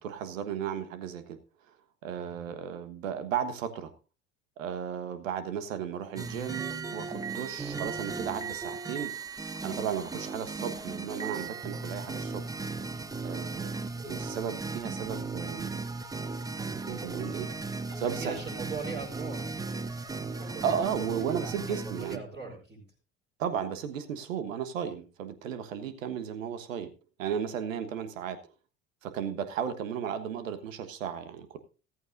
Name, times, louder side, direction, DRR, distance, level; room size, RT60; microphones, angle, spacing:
voice 1, 0.0-1.4 2.0-3.9 4.6-9.1 9.4-12.4 13.2-15.7 16.9-17.5 18.0-18.4 20.4-22.2 23.4-26.9 27.2-28.4 29.0-31.6, right 8 dB, 70° right, 12 dB, 1.4 m, -35 dB
voice 2, 2.1-2.5 18.0-20.7 21.3-22.8, right 4 dB, 25° right, -6 dB, 5.2 m, -41 dB
sound 1, 6.2-22.2, right 4 dB, 10° right, 0.7 m, -36 dB
14.5 x 14.0 x 2.6 m, 0.33 s
figure-of-eight pair, 70°, 41 cm